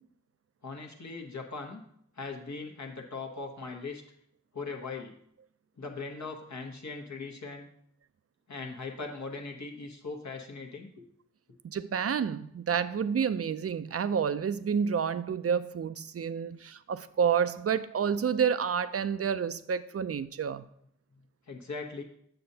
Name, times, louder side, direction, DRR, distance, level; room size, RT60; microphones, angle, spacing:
voice 1, 0.6-1.8 2.2-4.0 4.5-5.1 5.8-7.7 8.5-11.0 21.5-22.0, left 4 dB, 65° left, 0 dB, 1.0 m, -39 dB
voice 2, 11.7-20.7, right 7 dB, 50° right, 14 dB, 0.4 m, -29 dB
7.8 x 6.5 x 2.8 m, 0.69 s
wide cardioid pair, 50°, 30 cm